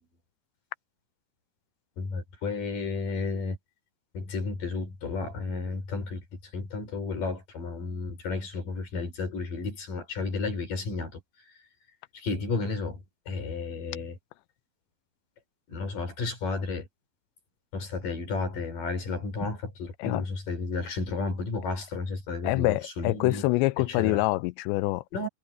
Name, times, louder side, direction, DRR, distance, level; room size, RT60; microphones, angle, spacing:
voice 1, 2.0-3.6 4.1-11.2 12.1-14.2 15.7-16.9 17.7-23.5 23.8-24.2 25.1-25.3, left 3 dB, 50° left, 6.3 m, -32 dB
voice 2, 22.4-25.3, left 20 dB, 90° left, 2.8 m, -26 dB
omnidirectional pair, 5.0 m